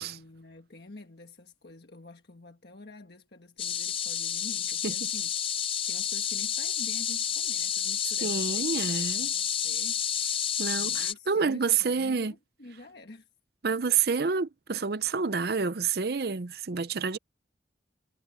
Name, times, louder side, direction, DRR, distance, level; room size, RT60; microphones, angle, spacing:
voice 1, 0.0-5.3 5.9-10.0 10.6-13.3 13.9-14.0, left 2 dB, 60° left, 1.4 m, -48 dB
sound 1, 3.6-11.1, left 9 dB, 30° left, 0.5 m, -30 dB
voice 2, 8.2-9.3 10.6-12.3 13.6-17.2, right 5 dB, 55° right, 0.6 m, -28 dB
head